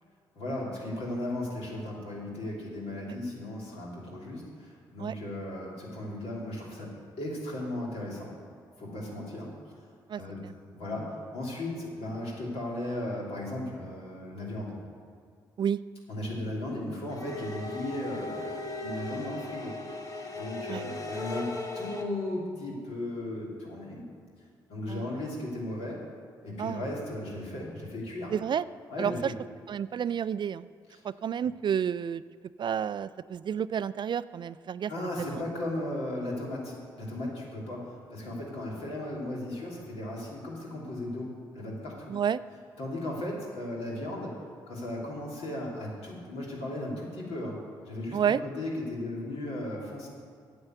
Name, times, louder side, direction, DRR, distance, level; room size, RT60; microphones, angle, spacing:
voice 1, 0.3-6.9 7.2-8.3 8.8-9.5 10.2-10.4 10.7-14.8 16.1-21.5 21.7-24.1 24.7-26.0 26.4-28.3 28.9-29.3 30.9-31.0 34.9-42.2 42.8-44.4 44.7-47.6 47.8-50.1, left 1 dB, 70° left, -4 dB, 3.1 m, -36 dB
sound 1, 17.1-22.0, left 2 dB, 35° left, 1.6 m, -38 dB
voice 2, 28.3-28.6 29.0-29.3 29.7-30.7 31.0-32.2 32.6-34.9 35.2-35.4 42.1-42.4 48.1-48.4, right 8 dB, 45° right, 17 dB, 0.3 m, -30 dB
9.6 x 7.1 x 8.0 m, 2.1 s
hypercardioid pair, 45°, 11 cm